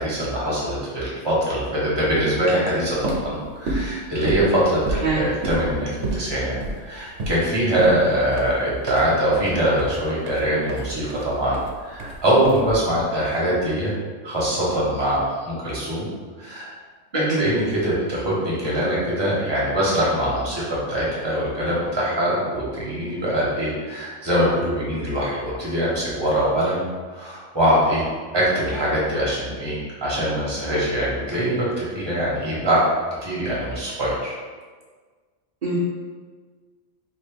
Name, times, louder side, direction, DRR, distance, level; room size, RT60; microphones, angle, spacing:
voice 1, 0.0-13.9 14.2-16.1 16.4-16.7 17.1-28.1 28.3-32.8 33.2-34.4, right 1 dB, 25° right, -6 dB, 0.9 m, -23 dB
sound 1, 2.9-13.1, right 2 dB, 85° right, 0.9 m, -31 dB
voice 2, 17.1-17.4 35.6-35.8, right 4 dB, 50° right, -7 dB, 0.6 m, -24 dB
2.9 x 2.8 x 3.3 m, 1.5 s
omnidirectional pair, 1.2 m